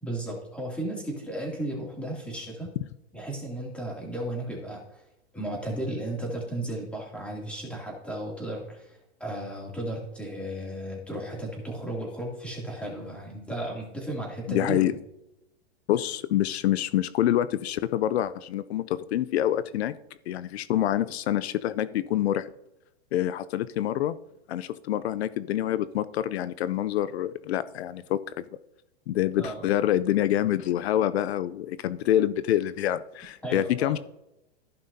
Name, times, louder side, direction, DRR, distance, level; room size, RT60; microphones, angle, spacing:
voice 1, 0.0-2.7 3.1-5.0 5.3-14.8 29.4-29.7 33.4-34.0, right 1 dB, 5° left, -2 dB, 2.6 m, -34 dB
voice 2, 14.5-14.9 15.9-19.9 20.3-22.5 23.1-24.2 24.5-28.4 29.1-34.0, left 12 dB, 75° left, 15 dB, 0.5 m, -26 dB
15.0 x 5.6 x 2.7 m, 0.88 s
hypercardioid pair, 140°, 33 cm